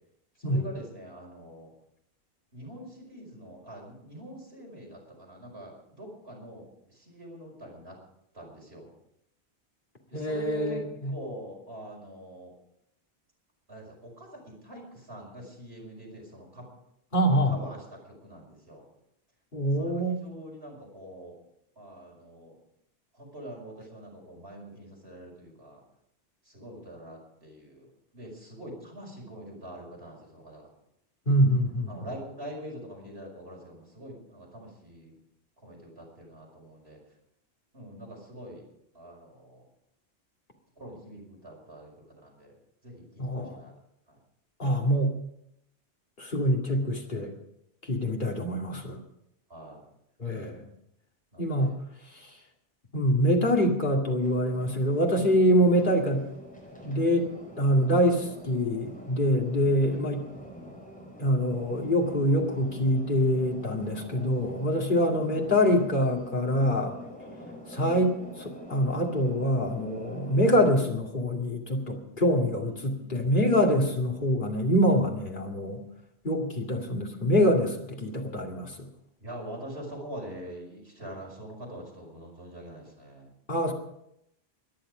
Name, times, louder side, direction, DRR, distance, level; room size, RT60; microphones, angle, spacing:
voice 1, 0.4-1.7 2.5-8.0 8.3-8.9 10.1-10.8 11.1-12.5 13.7-16.7 17.5-18.9 19.8-21.4 21.8-22.6 23.1-25.8 26.4-30.7 31.9-35.2 35.6-37.0 37.7-38.7 38.9-39.6 40.8-42.5 42.8-43.7 49.5-49.8 51.3-51.8 72.6-73.2 79.2-83.3, right 1 dB, 65° right, -1 dB, 5.7 m, -44 dB
voice 2, 10.1-11.1 17.1-17.5 19.5-20.2 31.3-31.9 43.2-43.6 44.6-45.1 46.2-47.3 47.9-49.0 50.2-50.6 51.4-51.7 52.9-56.2 56.8-57.3 57.6-60.2 61.2-66.9 67.7-75.8 76.2-78.7 83.5-83.7, equal, 50° left, 0 dB, 2.5 m, -25 dB
sound 1, 54.2-70.5, left 1 dB, 5° left, 4.8 m, -45 dB
23.5 x 10.5 x 5.0 m, 0.77 s
omnidirectional pair, 1.1 m